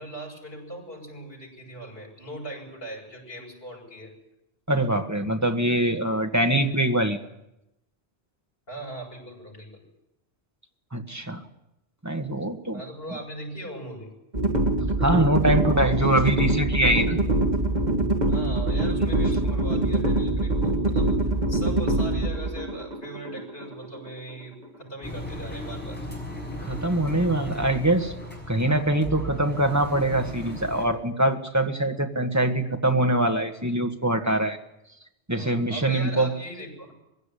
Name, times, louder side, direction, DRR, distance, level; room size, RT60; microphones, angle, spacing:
voice 1, 0.0-4.1 8.7-9.8 12.7-14.1 18.3-26.0 35.4-36.9, right 1 dB, 60° left, -2 dB, 7.3 m, -39 dB
voice 2, 4.7-7.2 10.9-11.4 12.0-12.8 15.0-17.2 26.6-28.1 28.5-34.6 35.3-36.3, right 1 dB, 15° right, 5 dB, 1.6 m, -23 dB
sound 1, 14.3-24.4, right 2 dB, 40° right, 1.9 m, -24 dB
Engine, 25.0-30.8, equal, 10° left, 6.2 m, -36 dB
21.5 x 16.5 x 10.0 m, 0.88 s
omnidirectional pair, 1.1 m